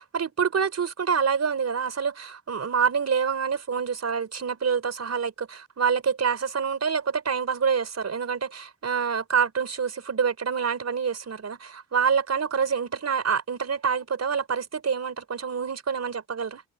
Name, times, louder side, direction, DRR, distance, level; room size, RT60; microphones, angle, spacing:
voice 1, 0.0-16.6, right 6 dB, 55° right, 4.9 m, -26 dB
wide cardioid pair, 135°, 31 cm